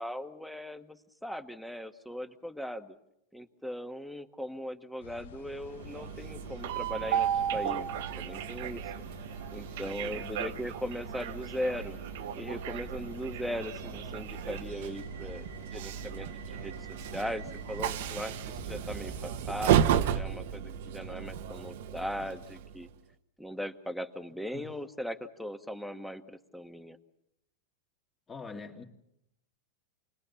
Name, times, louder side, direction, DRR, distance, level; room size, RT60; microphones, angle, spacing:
voice 1, 0.0-2.9 3.3-8.8 9.5-12.0 12.4-15.4 15.7-16.7 17.0-18.4 18.6-22.9 23.4-27.0, equal, ahead, 1.5 m, -39 dB
sound 1, 5.0-19.4, left 5 dB, 90° left, 1.3 m, -50 dB
Train, 5.6-22.9, right 9 dB, 70° right, 1.2 m, -34 dB
voice 2, 9.8-10.4 24.5-24.7 28.3-28.8, left 4 dB, 20° left, 2.4 m, -45 dB
28.5 x 20.0 x 7.1 m
supercardioid pair, 130°, 0 cm